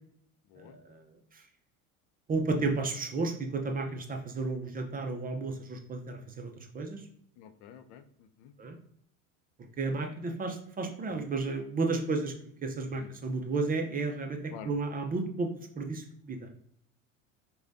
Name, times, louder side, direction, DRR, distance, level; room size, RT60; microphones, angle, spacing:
voice 1, 0.6-1.4 2.3-7.0 8.6-8.8 9.8-12.3 12.6-15.5 15.8-16.5, right 3 dB, 20° right, 4 dB, 0.5 m, -33 dB
voice 2, 7.4-8.5 12.9-13.2 14.5-14.7, left 9 dB, 60° left, 10 dB, 0.5 m, -49 dB
4.9 x 2.3 x 2.5 m, 0.67 s
hypercardioid pair, 85°, 41 cm